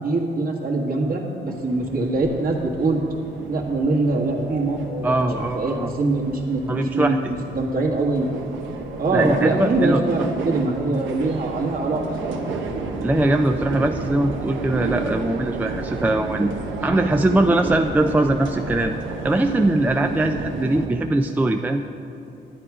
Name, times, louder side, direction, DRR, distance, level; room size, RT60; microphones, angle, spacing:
voice 1, 0.0-3.0 3.5-8.3 9.0-12.4, right 2 dB, 45° right, 0 dB, 1.7 m, -23 dB
sound 1, 1.5-20.9, right 3 dB, 75° right, 1.1 m, -32 dB
voice 2, 5.0-5.9 6.7-7.2 9.1-10.0 13.0-16.5 16.8-18.9 19.2-21.8, right 1 dB, 10° right, 5 dB, 0.4 m, -21 dB
10.0 x 9.7 x 4.8 m, 2.8 s
cardioid pair, 90°, 20 cm